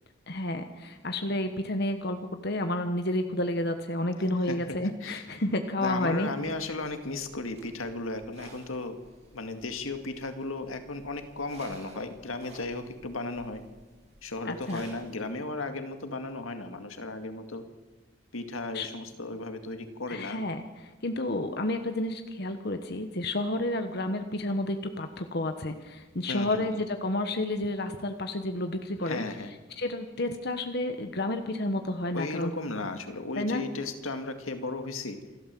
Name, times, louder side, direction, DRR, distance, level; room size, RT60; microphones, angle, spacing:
voice 1, 0.3-6.3 14.4-14.8 18.7-18.9 20.1-29.2 29.8-32.5 33.4-33.6, left 1 dB, 50° left, 6 dB, 1.2 m, -30 dB
voice 2, 4.5-5.2 5.8-9.0 9.3-13.6 14.2-17.6 18.3-20.4 26.3-26.8 29.0-29.5 32.1-35.2, left 2 dB, 90° left, 7 dB, 2.1 m, -35 dB
sound 1, 6.4-15.1, right 2 dB, 30° right, 4.0 m, -54 dB
27.5 x 12.5 x 7.7 m, 1.2 s
head